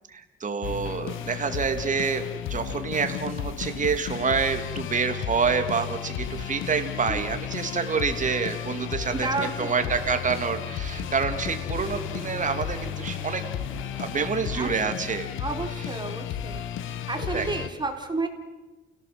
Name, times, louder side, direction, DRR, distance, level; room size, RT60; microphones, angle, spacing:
voice 1, 0.1-2.2 2.5-13.4 14.0-15.3 17.3-17.5, right 5 dB, 40° right, 6 dB, 3.2 m, -27 dB
sound 1, 0.6-17.7, left 9 dB, 90° left, 1.7 m, -33 dB
voice 2, 9.1-10.1 11.7-12.0 14.5-14.7 15.4-16.6 17.1-18.3, right 3 dB, 20° right, 4 dB, 4.5 m, -31 dB
sound 2, 9.4-14.6, right 1 dB, 5° right, 4.8 m, -48 dB
30.0 x 17.5 x 7.9 m, 1.1 s
cardioid pair, 90°, 20 cm